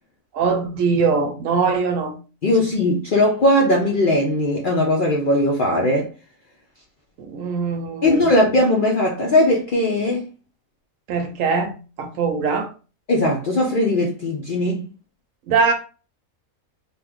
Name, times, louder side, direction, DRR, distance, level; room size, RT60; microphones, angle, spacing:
voice 1, 0.3-2.2 7.2-8.3 11.1-12.7 15.5-15.7, right 5 dB, 70° right, 0.9 m, -22 dB
voice 2, 2.4-6.1 8.0-10.2 13.1-14.9, left 1 dB, 55° left, 0.5 m, -19 dB
2.7 x 2.4 x 3.4 m
omnidirectional pair, 1.5 m